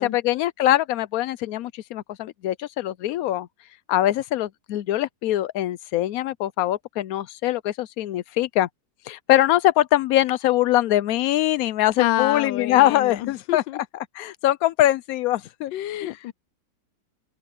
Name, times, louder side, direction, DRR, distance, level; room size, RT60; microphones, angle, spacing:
voice 1, 0.0-3.5 3.9-8.7 9.1-13.8 14.2-15.7 16.0-16.1, left 14 dB, 75° left, 0.8 m, -23 dB
voice 2, 12.0-13.8 15.7-16.3, left 14 dB, 90° left, 1.3 m, -28 dB
open air
omnidirectional pair, 2.0 m